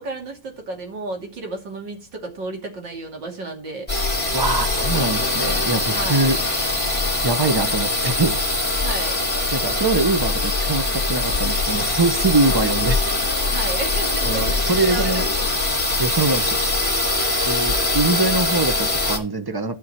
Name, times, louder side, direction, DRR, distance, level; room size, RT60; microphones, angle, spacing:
voice 1, 0.0-3.9 5.9-6.3 8.8-9.2 13.5-15.3 16.3-16.5 17.1-17.5, right 2 dB, 75° right, 2 dB, 3.3 m, -33 dB
sound 1, 3.9-19.2, left 2 dB, 5° left, 2.8 m, -22 dB
voice 2, 4.3-6.4 7.2-8.4 9.5-13.1 14.2-15.3 16.0-16.6 17.4-19.8, right 3 dB, 25° right, 9 dB, 0.5 m, -23 dB
13.0 x 5.7 x 5.8 m, 0.34 s
omnidirectional pair, 2.0 m